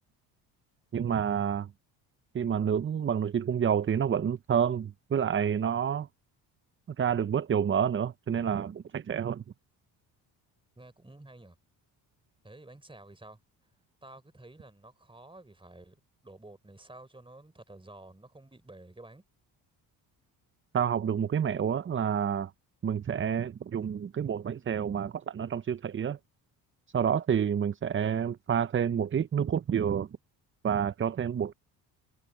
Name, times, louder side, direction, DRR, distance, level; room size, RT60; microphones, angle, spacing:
voice 1, 0.9-1.7 2.3-6.1 6.9-9.4 20.7-22.5 22.8-26.2 26.9-30.1 30.6-31.5, right 8 dB, 30° right, 0.6 m, -28 dB
voice 2, 10.8-11.6 12.4-13.4 14.0-19.2, right 2 dB, 10° right, 3.8 m, -51 dB
supercardioid pair, 70°, 44 cm